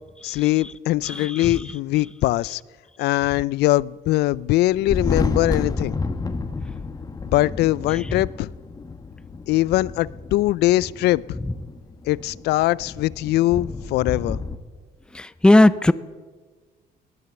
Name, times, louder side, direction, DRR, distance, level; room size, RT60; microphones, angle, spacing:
voice 1, 0.2-2.6 3.0-6.0 7.2-8.5 9.5-11.2 12.0-14.4, left 17 dB, 75° left, 22 dB, 0.4 m, -21 dB
Thunder, 4.7-14.6, left 4 dB, 20° left, 1.2 m, -30 dB
voice 2, 15.1-15.9, left 1 dB, 5° left, 16 dB, 0.5 m, -15 dB
19.0 x 10.5 x 7.1 m, 1.4 s
cardioid pair, 110°, 17 cm